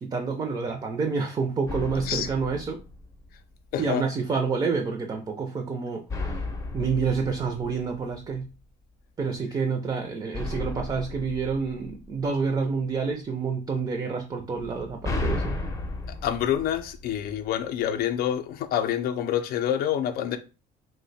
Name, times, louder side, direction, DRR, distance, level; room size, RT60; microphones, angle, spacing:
voice 1, 0.0-2.8 3.8-6.4 6.7-8.5 9.2-15.5, right 5 dB, 25° right, 0.5 m, -28 dB
sound 1, 1.7-3.5 6.1-8.5 10.3-12.6 14.6-17.6, left 2 dB, 20° left, 0.6 m, -34 dB
voice 2, 3.7-4.0 16.2-20.4, left 10 dB, 65° left, 0.4 m, -27 dB
2.7 x 2.1 x 3.9 m
cardioid pair, 110°, 17 cm